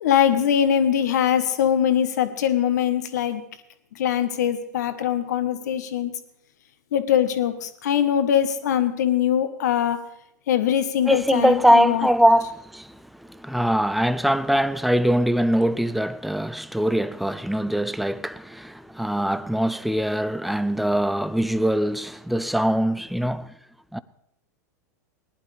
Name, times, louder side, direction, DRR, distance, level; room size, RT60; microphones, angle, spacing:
voice 1, 0.0-3.4 3.9-6.1 6.9-10.1 10.5-12.1, left 9 dB, 70° left, 1.3 m, -22 dB
voice 2, 11.1-23.5 23.9-24.0, equal, ahead, 0.5 m, -22 dB
19.0 x 11.0 x 3.4 m
hypercardioid pair, 95°, 10 cm